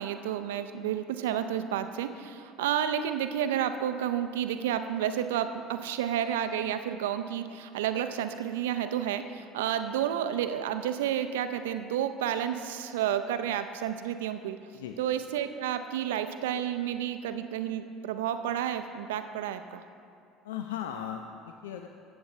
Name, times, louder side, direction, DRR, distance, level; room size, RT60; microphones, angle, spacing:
voice 1, 0.0-14.6 15.0-19.8, right 10 dB, 75° right, 9 dB, 0.5 m, -31 dB
voice 2, 20.4-21.9, left 9 dB, 75° left, 5 dB, 0.4 m, -37 dB
14.5 x 8.1 x 3.1 m, 2.5 s
hypercardioid pair, 65°, 0 cm